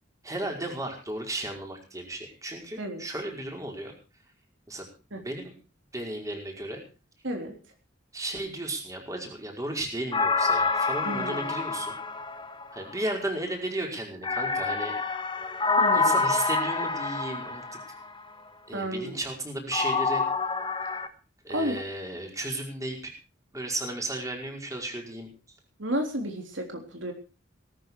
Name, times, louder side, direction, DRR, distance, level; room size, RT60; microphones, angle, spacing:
voice 1, 0.2-3.9 4.7-4.9 5.1-5.5 5.9-6.8 8.1-11.9 12.7-15.0 15.9-17.6 18.7-20.2 21.4-23.1 23.5-25.3, right 1 dB, 20° right, 1 dB, 5.1 m, -34 dB
voice 2, 7.2-7.6 11.1-11.4 15.8-16.2 18.7-19.2 21.5-21.8 25.8-27.1, equal, 70° right, 3 dB, 3.7 m, -32 dB
sound 1, 10.1-12.9 14.2-18.1 19.7-21.1, left 4 dB, 25° left, 1.6 m, -27 dB
18.0 x 13.5 x 4.8 m, 0.34 s
head